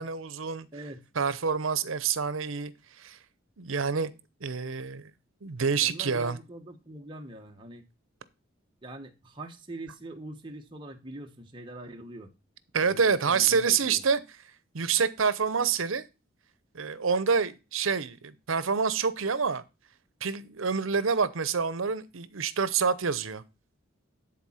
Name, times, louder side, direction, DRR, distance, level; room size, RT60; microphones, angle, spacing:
voice 1, 0.0-0.7 1.2-2.7 3.0-3.2 3.6-4.1 4.4-5.1 5.4-6.4 12.7-14.2 14.7-16.0 16.7-19.6 20.2-23.4, right 5 dB, 80° right, 0.8 m, -27 dB
voice 2, 0.7-1.0 5.8-7.9 8.8-12.3 12.8-14.0, right 1 dB, 25° right, 1.2 m, -43 dB
10.5 x 4.2 x 5.7 m
head